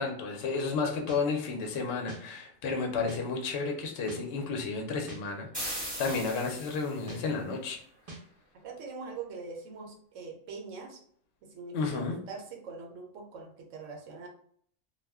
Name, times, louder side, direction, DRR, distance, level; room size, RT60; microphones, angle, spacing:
voice 1, 0.0-7.8 11.7-12.1, left 4 dB, 60° left, 2 dB, 0.7 m, -32 dB
sound 1, 1.1-1.2 2.1-2.2 3.1-3.2 4.1-4.2 5.1-5.2 6.1-6.2 7.1-7.2 8.1-8.2, right 2 dB, 40° right, 0.5 m, -43 dB
sound 2, 5.5-7.1, equal, 5° right, 0.9 m, -38 dB
voice 2, 8.6-11.0 11.5-14.3, right 4 dB, 70° right, 1 dB, 0.9 m, -43 dB
2.4 x 2.1 x 3.3 m, 0.62 s
omnidirectional pair, 1.4 m